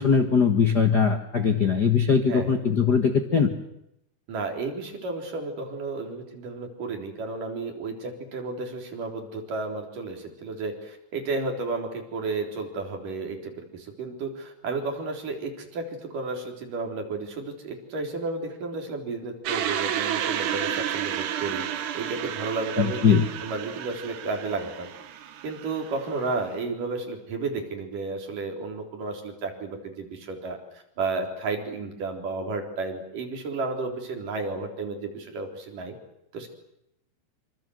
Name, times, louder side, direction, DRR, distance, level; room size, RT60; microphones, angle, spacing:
voice 1, 0.0-3.5 22.8-23.2, left 6 dB, 70° left, 7 dB, 0.9 m, -21 dB
voice 2, 2.3-2.6 4.3-21.7 21.9-24.9 25.4-36.0 36.3-36.5, right 3 dB, 55° right, 3 dB, 5.2 m, -32 dB
sound 1, 19.5-26.6, right 10 dB, 80° right, 3.7 m, -31 dB
26.5 x 26.0 x 8.0 m, 0.81 s
omnidirectional pair, 4.7 m